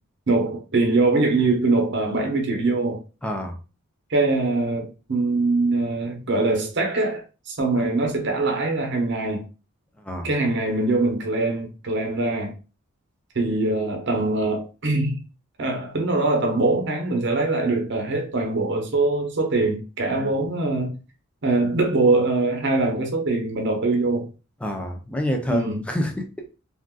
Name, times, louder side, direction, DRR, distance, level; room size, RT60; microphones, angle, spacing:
voice 1, 0.3-3.0 4.1-9.5 10.2-12.5 13.3-15.2 15.6-21.0 21.4-24.3 25.5-25.8, right 2 dB, 55° right, 0.8 m, -23 dB
voice 2, 3.2-3.6 7.8-7.9 10.0-10.3 20.1-20.3 24.6-26.3, left 1 dB, 5° left, 0.5 m, -28 dB
3.6 x 2.5 x 2.2 m
head